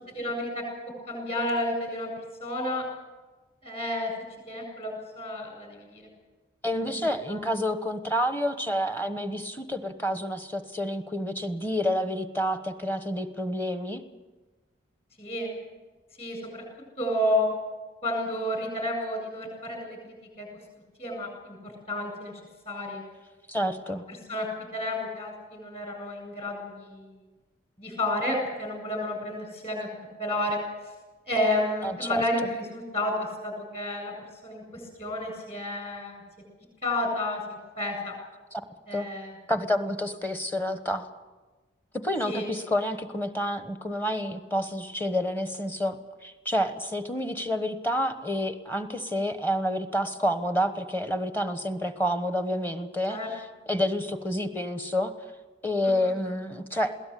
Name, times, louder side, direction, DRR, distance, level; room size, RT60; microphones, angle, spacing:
voice 1, 0.1-0.6 1.1-2.1 2.4-2.9 3.6-4.1 4.5-6.1 6.9-7.4 15.2-15.5 16.2-16.6 17.0-17.5 18.0-20.5 21.0-22.3 22.6-23.0 24.1-27.1 27.8-29.9 30.2-30.6 31.3-34.1 34.4-36.2 36.8-38.1 38.9-39.3 42.3-42.5 53.1-53.3 55.8-56.1, left 1 dB, 30° left, 2 dB, 7.9 m, -31 dB
voice 2, 6.6-14.0 23.5-24.0 31.8-32.2 38.5-38.6 38.9-39.1 39.5-41.1 42.0-53.2 53.7-55.1 55.6-56.9, equal, 10° left, 9 dB, 1.1 m, -29 dB
21.5 x 17.0 x 8.4 m, 1.2 s
head